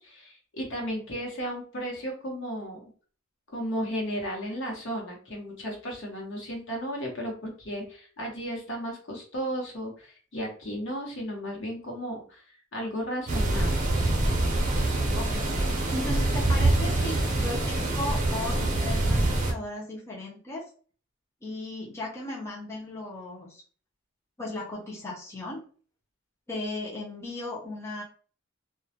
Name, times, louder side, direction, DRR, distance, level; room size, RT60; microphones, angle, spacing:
voice 1, 0.0-2.9 3.5-12.4 12.7-13.9, equal, 60° left, 0 dB, 0.8 m, -34 dB
sound 1, 13.3-19.5, right 2 dB, 35° right, 0.5 m, -25 dB
voice 2, 15.1-20.7 21.4-23.6 24.4-25.6 26.5-28.0, left 2 dB, 15° left, -4 dB, 0.5 m, -36 dB
2.2 x 2.0 x 2.7 m, 0.41 s
head